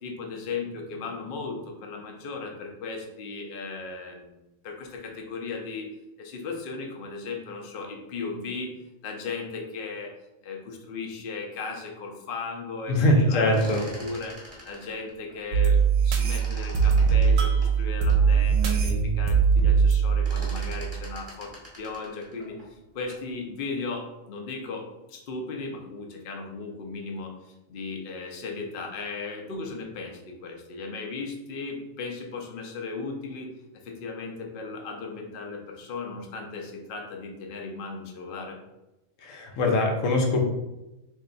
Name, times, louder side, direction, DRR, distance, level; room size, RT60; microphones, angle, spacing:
voice 1, 0.0-5.9 6.2-8.7 9.0-10.1 10.4-14.4 14.6-33.5 33.8-38.6, left 4 dB, 50° left, 1 dB, 0.7 m, -36 dB
voice 2, 12.9-13.8 39.2-40.4, left 1 dB, 75° left, 2 dB, 1.0 m, -22 dB
sound 1, 13.3-15.9 16.1-18.3 18.8-18.9 19.1-19.5 19.8-23.3, equal, 10° right, 0.9 m, -44 dB
sound 2, 15.5-21.1, right 6 dB, 75° right, 0.9 m, -21 dB
3.2 x 2.7 x 3.8 m, 0.96 s
omnidirectional pair, 1.4 m